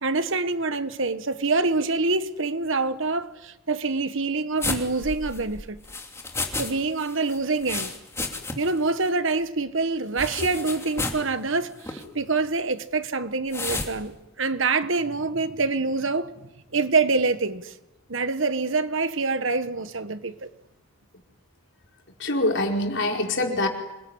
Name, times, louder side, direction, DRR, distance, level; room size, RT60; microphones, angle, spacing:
voice 1, 0.0-5.8 6.6-7.9 8.6-16.3 16.7-17.7 18.1-20.5, right 3 dB, 60° right, 1.4 m, -26 dB
sound 1, 4.6-6.7 7.0-8.8 9.1-9.2 10.2-11.3 11.8-12.0 13.5-13.9, left 3 dB, 10° left, 3.0 m, -31 dB
voice 2, 22.2-23.7, left 1 dB, 55° left, 4.8 m, -24 dB
27.0 x 21.5 x 9.9 m
head